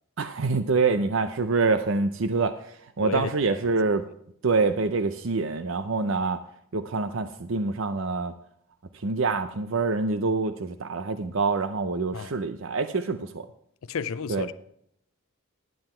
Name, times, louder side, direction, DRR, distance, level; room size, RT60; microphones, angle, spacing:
voice 1, 0.2-4.1 4.4-6.4 6.7-8.3 8.9-13.5 14.3-14.5, right 4 dB, 65° right, 0.6 m, -26 dB
voice 2, 3.0-3.3 12.1-12.4 13.8-14.5, left 5 dB, 70° left, 0.5 m, -31 dB
12.0 x 7.7 x 4.4 m
head